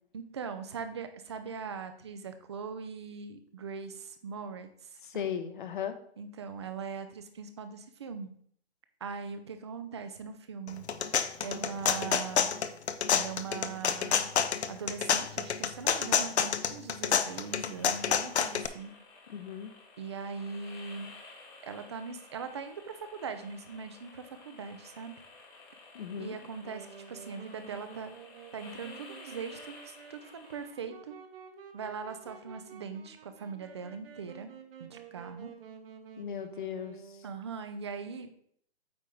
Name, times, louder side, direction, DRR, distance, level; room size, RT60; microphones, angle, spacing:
voice 1, 0.1-5.3 6.2-8.3 9.0-10.8 11.4-12.5 13.1-14.3 14.7-18.9 20.0-21.1 21.6-25.1 26.2-28.1 28.5-31.1 31.7-34.5 34.8-35.5 37.2-38.4, right 5 dB, 25° right, 9 dB, 0.5 m, -41 dB
voice 2, 5.0-6.0 19.3-19.7 25.9-26.4 36.2-37.0, left 8 dB, 50° left, 10 dB, 1.0 m, -36 dB
sound 1, 10.7-18.7, left 7 dB, 75° left, 0.7 m, -28 dB
sound 2, 17.2-30.6, left 3 dB, 10° left, 0.9 m, -53 dB
Wind instrument woodwind instrument, 26.6-37.5, right 7 dB, 60° right, 1.2 m, -51 dB
8.5 x 3.1 x 5.2 m, 0.63 s
hypercardioid pair, 155°, 33 cm